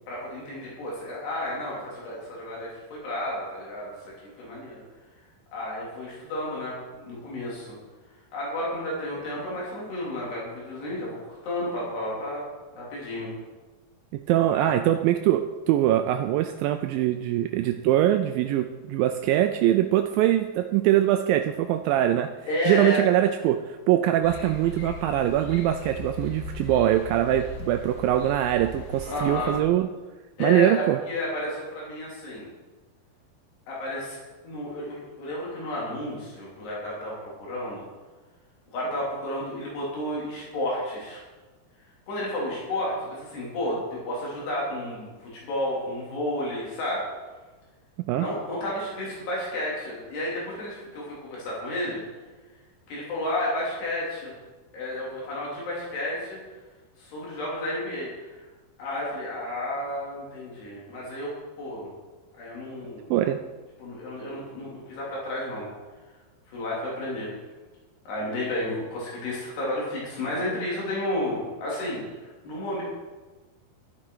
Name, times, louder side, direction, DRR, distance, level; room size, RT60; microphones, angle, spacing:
voice 1, 0.1-3.9 4.2-4.8 5.5-6.8 7.0-7.8 8.3-12.4 12.8-13.3 14.5-14.7 22.5-23.0 29.1-29.5 30.4-32.5 33.7-34.2 34.4-37.8 38.7-41.2 42.1-47.0 48.1-52.0 52.9-54.3 54.7-56.4 57.0-58.5 58.8-61.9 62.3-63.3 63.8-65.7 66.5-67.3 68.1-72.8, left 1 dB, 85° left, -5 dB, 5.5 m, -32 dB
voice 2, 14.1-22.3 22.7-29.9 30.4-31.0 48.1-48.3 63.1-63.4, right 12 dB, 90° right, 8 dB, 2.0 m, -23 dB
sound 1, 24.2-29.6, left 2 dB, 60° left, 2.9 m, -39 dB
12.5 x 11.0 x 4.7 m, 1.3 s
omnidirectional pair, 4.6 m